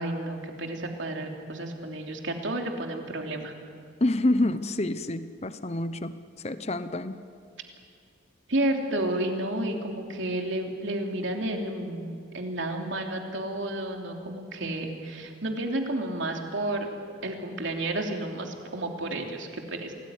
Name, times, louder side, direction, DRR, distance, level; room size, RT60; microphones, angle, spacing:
voice 1, 0.0-3.5 8.5-16.9 17.2-19.9, right 1 dB, 70° right, 2 dB, 3.1 m, -31 dB
voice 2, 4.0-7.2, left 1 dB, 30° left, 12 dB, 0.8 m, -28 dB
27.0 x 18.5 x 9.7 m, 2.3 s
head